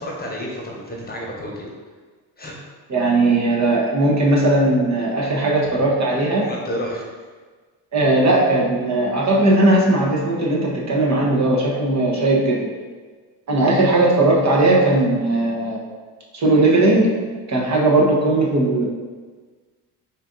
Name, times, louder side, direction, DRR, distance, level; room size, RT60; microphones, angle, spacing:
voice 1, 0.0-1.7 2.4-2.5 6.4-7.1, equal, 25° left, -2 dB, 1.0 m, -30 dB
voice 2, 2.9-6.5 7.9-12.7 13.5-15.8 16.3-17.2 17.5-18.9, right 2 dB, 45° right, -3 dB, 1.1 m, -18 dB
4.2 x 2.6 x 3.8 m, 1.5 s
cardioid pair, 85°, 40 cm